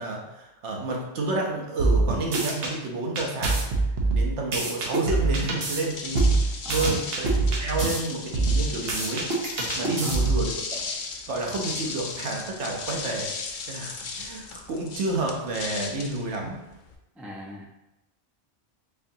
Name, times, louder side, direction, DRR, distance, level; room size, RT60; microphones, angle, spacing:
voice 1, 0.0-3.7 4.0-10.8 11.3-16.6, right 2 dB, 80° right, 0 dB, 1.1 m, -30 dB
sound 1, 1.8-2.7 3.2-5.8 6.1-8.0 8.3-10.5, right 3 dB, 60° right, 0.9 m, -24 dB
sound 2, 5.5-17.0, left 4 dB, 60° left, 0.5 m, -36 dB
voice 2, 6.6-6.9 9.8-10.2 17.2-17.7, equal, ahead, -3 dB, 0.3 m, -39 dB
4.4 x 2.8 x 2.7 m, 0.91 s
omnidirectional pair, 1.2 m